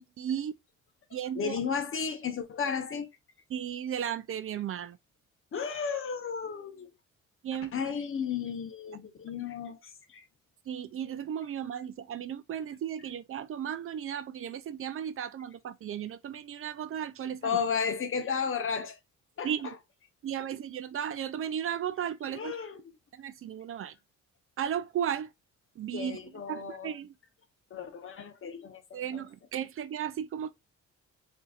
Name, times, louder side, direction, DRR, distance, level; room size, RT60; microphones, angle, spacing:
voice 1, 0.2-0.5 1.1-1.6 3.5-5.0 7.4-7.7 10.7-17.6 19.4-19.7 20.2-22.6 23.1-23.9 24.6-25.3 25.8-26.2 26.5-27.1 28.9-30.5, right 9 dB, 45° right, 0.4 m, -35 dB
voice 2, 1.3-3.1 5.5-6.9 7.7-10.3 17.4-19.0 19.4-19.7 22.3-23.0 25.9-27.0 27.7-29.2, left 6 dB, 45° left, 0.8 m, -34 dB
3.9 x 2.7 x 2.4 m
cardioid pair, 90°, 30 cm